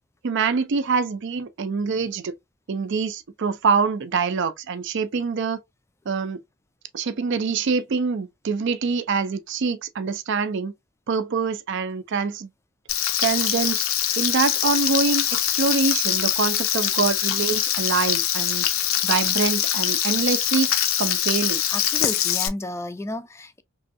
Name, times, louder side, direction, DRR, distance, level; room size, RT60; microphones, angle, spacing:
voice 1, 0.2-2.4 2.7-5.6 6.1-6.4 6.9-10.7 11.1-12.5 13.2-13.9 14.2-20.7 21.0-21.6, right 5 dB, 60° right, 0.4 m, -25 dB
Frying (food), 12.9-22.5, left 11 dB, 80° left, 0.5 m, -23 dB
voice 2, 21.7-23.6, left 2 dB, 15° left, 0.3 m, -32 dB
3.1 x 2.6 x 2.5 m
head